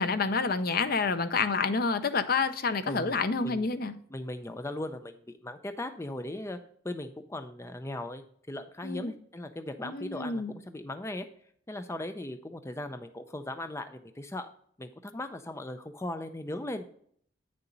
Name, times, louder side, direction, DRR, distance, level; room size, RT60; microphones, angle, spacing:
voice 1, 0.0-3.9 8.8-9.1 9.8-10.5, left 4 dB, 50° left, 11 dB, 0.7 m, -28 dB
voice 2, 2.9-3.7 4.1-6.6 6.8-11.3 11.7-14.5 14.8-16.9, left 1 dB, 15° left, 8 dB, 0.5 m, -38 dB
8.8 x 6.9 x 3.9 m, 0.62 s
head